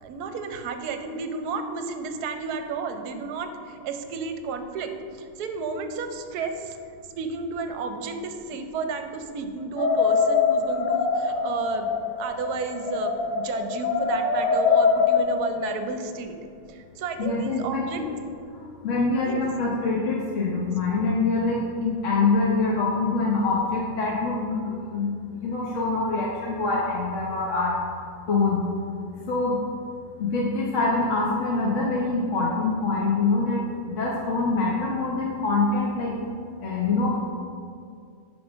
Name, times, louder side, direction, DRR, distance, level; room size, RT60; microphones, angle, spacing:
voice 1, 0.0-6.8 7.2-11.9 12.2-16.4 16.7-18.0 19.2-19.5, right 5 dB, 65° right, 7 dB, 1.1 m, -32 dB
sound 1, 9.8-15.5, left 5 dB, 70° left, 1.4 m, -23 dB
voice 2, 17.2-18.2 18.6-27.8 28.3-28.7 29.3-29.6 30.2-36.2 36.6-37.2, left 3 dB, 50° left, -3 dB, 1.1 m, -25 dB
10.0 x 3.7 x 6.1 m, 2.3 s
omnidirectional pair, 1.9 m